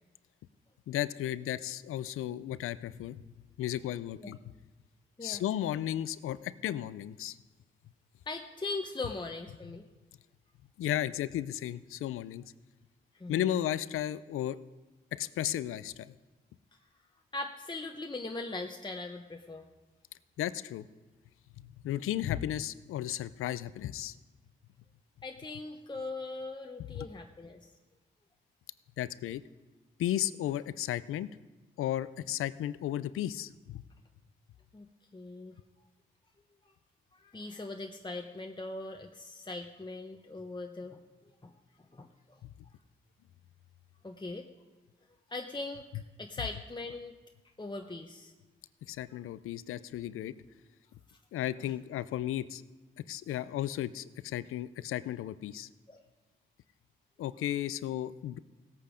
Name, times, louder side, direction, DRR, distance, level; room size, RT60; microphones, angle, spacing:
voice 1, 0.9-3.2 3.6-4.4 5.2-7.4 10.8-12.4 13.3-14.6 15.1-16.1 20.4-20.9 21.6-24.1 26.9-27.1 29.0-29.4 30.0-31.3 31.8-33.8 42.4-42.5 48.9-50.3 51.3-52.6 53.1-55.7 57.2-58.4, left 12 dB, 85° left, 17 dB, 0.5 m, -34 dB
voice 2, 8.3-9.9 13.1-13.6 17.3-19.6 25.2-27.7 34.7-35.5 37.1-41.5 41.9-42.4 44.0-44.5 45.3-45.9 46.2-47.2 47.6-48.3 51.1-51.2 51.6-51.7 55.9-56.0, left 2 dB, 20° left, 3 dB, 1.0 m, -40 dB
17.0 x 8.4 x 5.1 m, 1.2 s
supercardioid pair, 50°, 21 cm